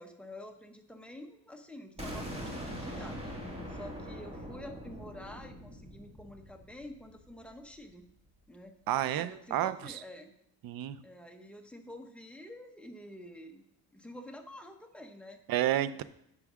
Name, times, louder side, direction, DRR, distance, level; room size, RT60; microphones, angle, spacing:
voice 1, 0.0-3.4 3.7-8.0 8.5-8.7 9.2-10.3 11.0-13.7 13.9-15.4, left 1 dB, 5° left, 3 dB, 0.8 m, -48 dB
sound 1, 2.0-7.8, equal, 15° right, 1.7 m, -42 dB
voice 2, 8.9-9.9 10.6-11.0 15.5-16.0, right 12 dB, 60° right, 15 dB, 0.5 m, -30 dB
9.4 x 6.1 x 3.6 m, 0.75 s
cardioid pair, 120°, 40 cm